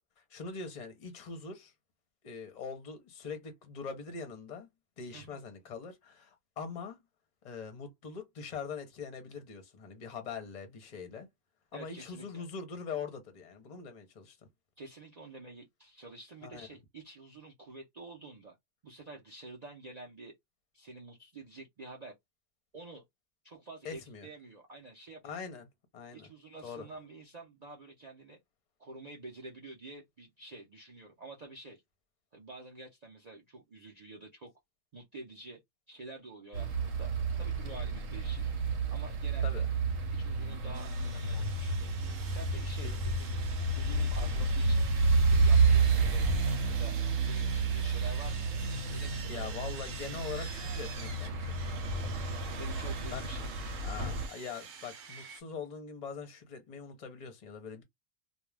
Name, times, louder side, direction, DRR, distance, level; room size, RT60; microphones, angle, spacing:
voice 1, 0.2-1.7 2.2-4.7 5.0-7.0 7.4-11.3 11.7-14.4 16.4-16.7 23.8-24.3 25.2-25.7 25.9-26.3 26.6-26.9 39.4-39.7 42.8-43.0 44.2-44.4 49.3-51.6 53.1-53.3 53.8-57.8, left 5 dB, 40° left, 0.7 m, -42 dB
voice 2, 11.7-12.4 14.8-18.6 18.8-20.3 20.7-22.1 22.7-23.0 23.4-25.4 26.1-28.4 28.8-31.8 32.3-34.5 34.9-35.6 35.9-38.5 38.9-39.6 40.1-42.0 42.3-43.4 43.8-44.9 45.3-46.3 46.7-48.5 48.9-49.5 52.6-53.6, right 2 dB, 45° right, 0.6 m, -49 dB
sound 1, 36.5-54.3, right 3 dB, 85° right, 1.0 m, -30 dB
Sawing, 40.7-55.4, right 6 dB, 65° right, 1.0 m, -48 dB
2.3 x 2.2 x 3.2 m
omnidirectional pair, 1.3 m